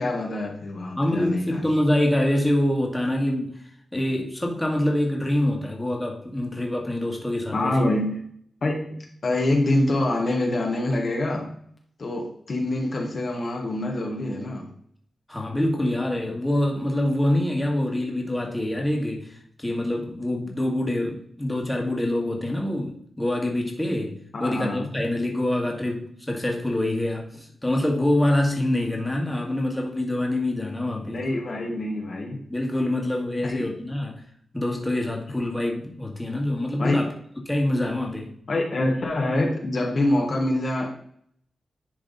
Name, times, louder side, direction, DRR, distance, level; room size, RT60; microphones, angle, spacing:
voice 1, 0.0-1.6 7.5-8.2 8.6-9.0 9.2-11.5 12.0-14.7 24.3-24.9 31.0-32.4 33.4-33.7 36.8-37.1 38.5-40.9, left 1 dB, 55° left, 1 dB, 1.3 m, -25 dB
voice 2, 1.0-3.6 3.9-7.8 15.3-31.2 32.5-34.2 34.5-37.1 37.5-38.3, left 1 dB, 10° left, 0 dB, 1.7 m, -25 dB
10.5 x 3.4 x 4.0 m, 0.64 s
cardioid pair, 85°, 0 cm